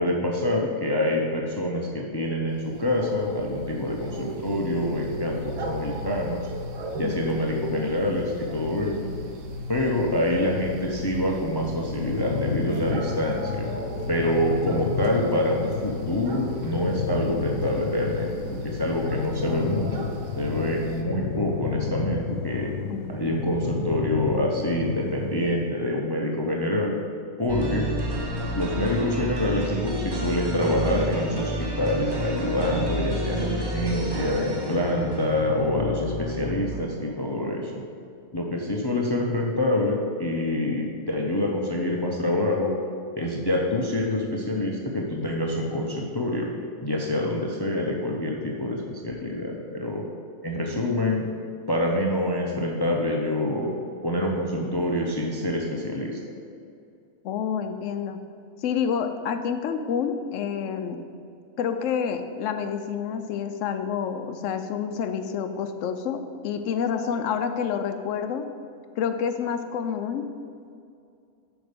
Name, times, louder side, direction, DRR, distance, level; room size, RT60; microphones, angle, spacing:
voice 1, 0.0-6.4 6.9-9.1 9.7-13.7 14.1-20.1 20.4-22.7 23.1-27.0 27.4-27.9 28.6-37.8 38.3-42.7 43.2-46.5 46.8-50.0 50.4-51.3 51.7-53.7 54.0-56.2, left 1 dB, 35° left, -1 dB, 0.4 m, -26 dB
sound 1, 2.5-21.0, equal, 65° right, 1.1 m, -35 dB
voice 2, 7.0-7.4 22.9-23.3 27.6-28.0 57.2-58.2 58.6-61.0 61.6-68.5 69.0-70.3, left 7 dB, 70° left, 7 dB, 0.9 m, -28 dB
sound 2, 11.8-25.6, left 6 dB, 85° left, 1.3 m, -32 dB
sound 3, 27.5-37.3, right 1 dB, 25° right, 0.6 m, -30 dB
8.0 x 5.4 x 5.2 m, 2.5 s
omnidirectional pair, 1.5 m